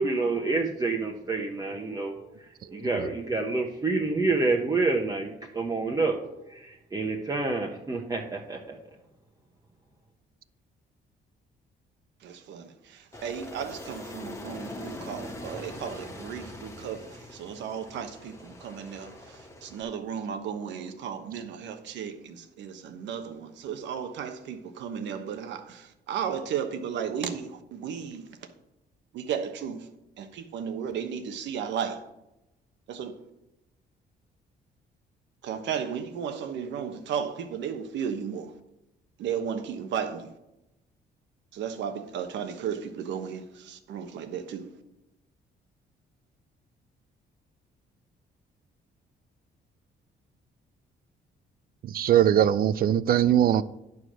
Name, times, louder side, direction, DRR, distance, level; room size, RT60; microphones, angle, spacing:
voice 1, 0.0-6.2 6.5-8.8, right 3 dB, 20° right, 1.0 m, -28 dB
voice 2, 12.2-28.3 29.1-29.9 30.2-32.0 32.9-33.2 35.4-38.5 39.2-40.3 41.5-44.7, right 7 dB, 80° right, 1.1 m, -34 dB
Aircraft, 13.1-19.8, left 1 dB, 15° left, 1.3 m, -42 dB
voice 3, 51.8-53.6, right 10 dB, 55° right, 0.5 m, -21 dB
10.5 x 4.8 x 6.2 m
cardioid pair, 115°, 18 cm